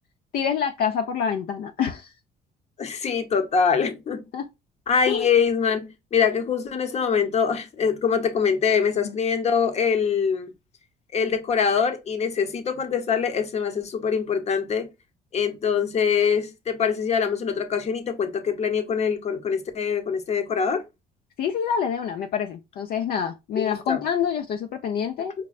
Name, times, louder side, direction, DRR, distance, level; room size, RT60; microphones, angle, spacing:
voice 1, 0.3-2.1 4.3-4.5 5.1-5.3 21.4-25.3, left 7 dB, 60° left, 0.5 m, -26 dB
voice 2, 2.8-4.3 4.9-10.5 11.1-14.9 15.3-20.8 23.5-24.0, left 6 dB, 40° left, 0.8 m, -24 dB
5.2 x 2.2 x 2.3 m
cardioid pair, 110°, 17 cm